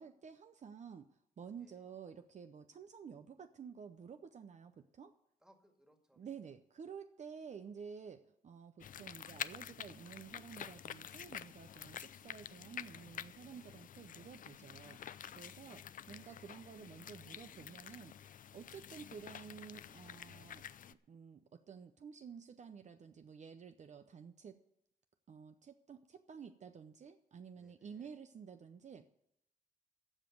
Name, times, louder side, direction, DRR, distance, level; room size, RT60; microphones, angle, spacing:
voice 1, 0.0-5.1 6.2-15.0 15.4-18.1 18.5-24.6 25.3-29.1, right 6 dB, 50° right, 9 dB, 0.7 m, -52 dB
voice 2, 1.6-1.9 5.4-6.3 15.5-16.3 27.5-28.2, equal, 5° right, 5 dB, 1.9 m, -69 dB
sound 1, 8.8-20.9, left 9 dB, 60° left, 0.5 m, -49 dB
14.5 x 5.2 x 9.3 m, 0.79 s
cardioid pair, 100°, 15 cm